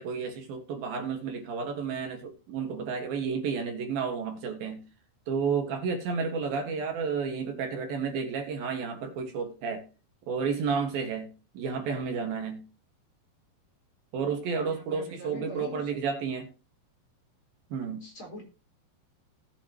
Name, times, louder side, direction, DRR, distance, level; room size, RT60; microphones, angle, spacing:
voice 1, 0.0-4.8 5.3-9.8 10.3-12.6 14.1-16.5 17.7-18.0, right 5 dB, 65° right, 3.2 m, -31 dB
voice 2, 14.6-15.9 18.0-18.4, equal, 30° left, 4.7 m, -43 dB
18.5 x 8.3 x 2.9 m
omnidirectional pair, 4.7 m